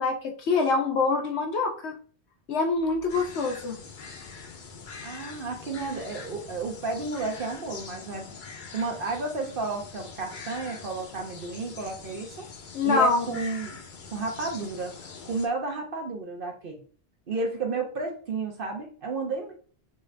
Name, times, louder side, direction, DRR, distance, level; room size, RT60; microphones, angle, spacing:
voice 1, 0.0-2.0 2.5-3.8 12.7-13.4, left 4 dB, 90° left, 3 dB, 1.2 m, -25 dB
sound 1, 3.1-15.5, left 5 dB, 55° left, 0.8 m, -43 dB
voice 2, 5.0-8.3 8.7-12.5 12.8-13.8 14.1-16.8 17.3-19.5, right 3 dB, 60° right, 2 dB, 0.9 m, -32 dB
6.4 x 2.5 x 3.2 m, 0.43 s
omnidirectional pair, 1.1 m